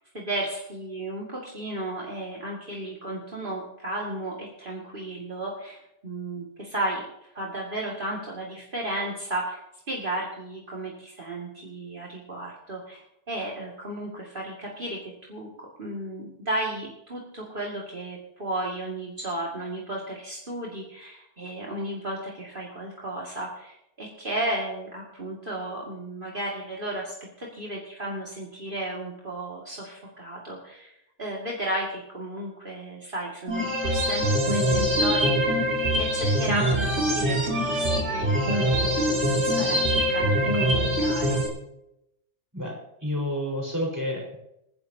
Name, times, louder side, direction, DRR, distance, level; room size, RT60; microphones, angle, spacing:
voice 1, 0.1-7.0 7.3-9.6 9.9-13.0 13.3-30.9 31.2-35.6 36.0-41.4, right 1 dB, 45° right, -4 dB, 2.4 m, -34 dB
sound 1, 33.5-41.5, equal, 65° right, 3.2 m, -23 dB
voice 2, 42.5-44.4, left 1 dB, 15° right, -3 dB, 4.4 m, -30 dB
26.5 x 10.5 x 2.8 m, 0.82 s
omnidirectional pair, 1.2 m